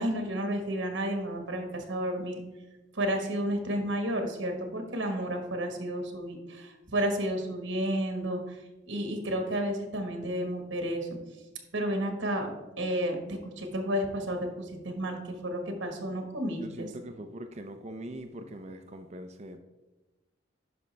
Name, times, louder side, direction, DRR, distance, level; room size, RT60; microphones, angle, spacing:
voice 1, 0.0-2.4 2.9-8.6 8.8-11.1 11.7-12.5 12.8-16.9, equal, 75° right, 4 dB, 1.4 m, -31 dB
voice 2, 16.6-19.6, right 1 dB, 35° right, 7 dB, 0.5 m, -42 dB
11.0 x 5.1 x 3.3 m, 1.1 s
head